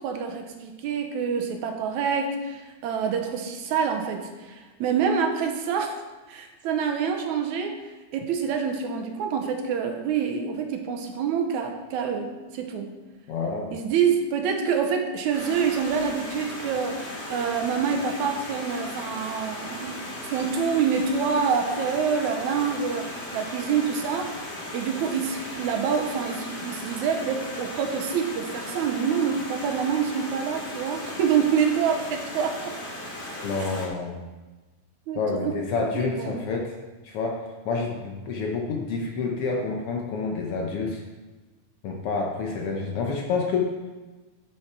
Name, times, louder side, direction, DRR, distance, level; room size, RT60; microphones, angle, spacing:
voice 1, 0.0-6.0 6.3-7.8 8.1-12.9 13.7-32.8 35.1-35.5 35.9-36.4, right 6 dB, 75° right, 5 dB, 2.0 m, -26 dB
voice 2, 13.3-13.7 33.4-34.2 35.1-36.7 37.0-41.0 41.8-43.7, left 4 dB, 75° left, 1 dB, 1.3 m, -28 dB
Stream, 15.3-33.9, left 1 dB, 30° left, 1.1 m, -37 dB
10.5 x 6.3 x 4.6 m, 1.2 s
omnidirectional pair, 3.7 m